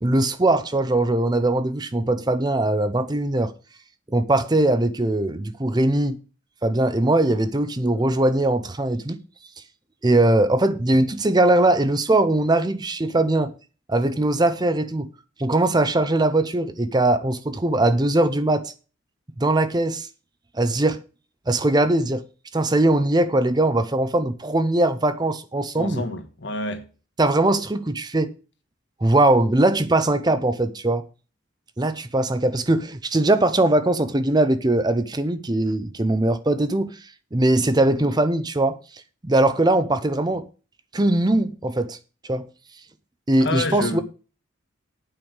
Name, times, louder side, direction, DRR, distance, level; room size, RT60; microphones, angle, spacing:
voice 1, 0.0-3.5 4.1-6.2 6.6-9.2 10.0-13.5 13.9-15.1 15.4-18.7 19.4-20.1 20.5-21.0 21.5-22.2 22.5-26.0 27.2-28.3 29.0-31.0 31.8-37.0 37.3-38.8 39.2-40.5 40.9-42.0 42.2-42.4 43.3-44.0, right 2 dB, 20° right, 0.6 m, -20 dB
voice 2, 25.7-26.9 43.4-44.0, left 2 dB, 60° left, 1.6 m, -28 dB
8.9 x 5.3 x 7.9 m
head